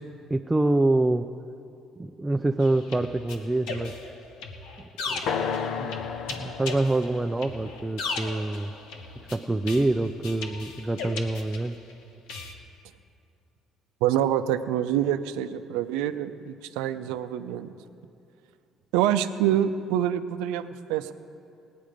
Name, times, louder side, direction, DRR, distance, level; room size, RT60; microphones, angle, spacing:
voice 1, 0.3-1.3 2.0-4.0 4.8-5.9 6.3-8.7 9.2-11.8, right 2 dB, 15° right, 5 dB, 0.5 m, -26 dB
sound 1, 2.6-11.9 12.3-12.5, left 4 dB, 85° left, 1.1 m, -37 dB
sound 2, 5.3-9.2, left 6 dB, 70° left, 0.7 m, -34 dB
voice 2, 14.0-17.7 18.9-21.1, right 11 dB, 85° right, 10 dB, 0.5 m, -26 dB
18.0 x 9.5 x 5.1 m, 2.6 s
supercardioid pair, 70°, 0 cm